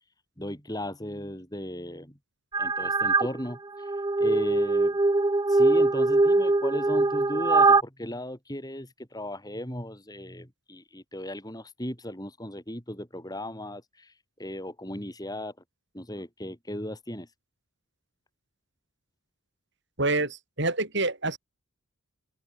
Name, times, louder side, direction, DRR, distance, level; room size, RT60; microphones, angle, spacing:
voice 1, 0.4-2.2 2.6-3.9 4.2-5.0 5.5-14.1 14.4-15.5 15.9-17.3 20.2-20.3, left 1 dB, 20° left, 6.7 m, -36 dB
sound 1, 2.5-3.3 3.8-7.8, right 3 dB, 20° right, 0.4 m, -22 dB
voice 2, 20.0-21.4, right 2 dB, 55° right, 6.6 m, -27 dB
open air
head